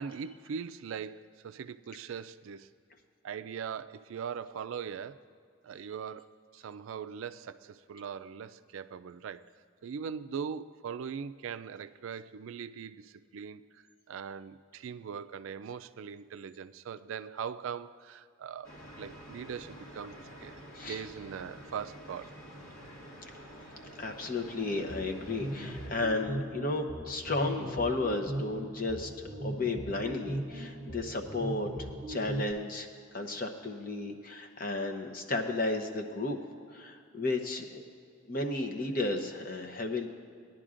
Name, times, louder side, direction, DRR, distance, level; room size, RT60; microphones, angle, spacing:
voice 1, 0.0-2.7 3.2-5.2 5.6-6.3 6.5-9.5 9.8-20.6 20.9-22.3, right 7 dB, 70° right, 13 dB, 0.3 m, -41 dB
sound 1, 18.6-25.9, equal, 75° left, 2.1 m, -49 dB
voice 2, 24.0-32.9 33.1-36.4 36.7-37.8 38.3-40.1, left 2 dB, 40° left, 4 dB, 0.8 m, -33 dB
sound 2, 24.5-32.5, right 1 dB, 5° left, 1.2 m, -39 dB
19.5 x 10.5 x 2.5 m, 2.2 s
head